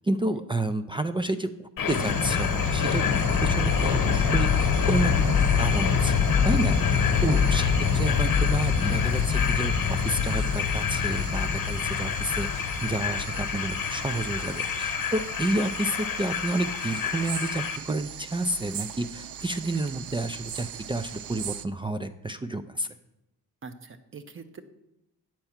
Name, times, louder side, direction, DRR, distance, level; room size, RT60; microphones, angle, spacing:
voice 1, 0.0-22.9, right 2 dB, 15° right, 10 dB, 0.3 m, -30 dB
sound 1, 1.8-17.8, left 6 dB, 75° left, 1.1 m, -25 dB
sound 2, 1.9-21.7, right 9 dB, 75° right, 0.5 m, -40 dB
voice 2, 7.1-7.4 23.6-24.6, right 4 dB, 35° right, 10 dB, 0.8 m, -41 dB
8.9 x 4.5 x 7.2 m, 0.90 s
cardioid pair, 105°, 34 cm